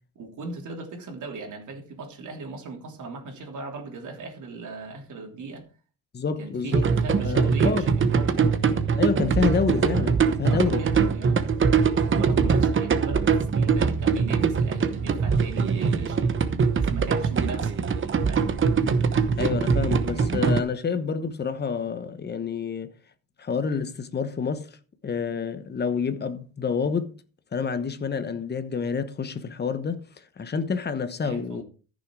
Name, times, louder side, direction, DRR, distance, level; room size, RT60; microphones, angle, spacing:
voice 1, 0.1-5.6 6.4-8.4 10.5-11.5 11.9-16.4 16.7-17.8 18.3-18.6 31.2-31.6, right 3 dB, 55° right, 3.2 m, -38 dB
voice 2, 6.1-6.9 7.2-7.9 8.7-10.9 19.4-22.9 23.4-24.7 25.0-27.1 27.5-30.0 30.4-31.6, left 5 dB, 30° left, 1.1 m, -28 dB
sound 1, 6.7-20.6, right 5 dB, 35° right, 1.0 m, -22 dB
14.0 x 6.4 x 4.7 m
cardioid pair, 140°, 36 cm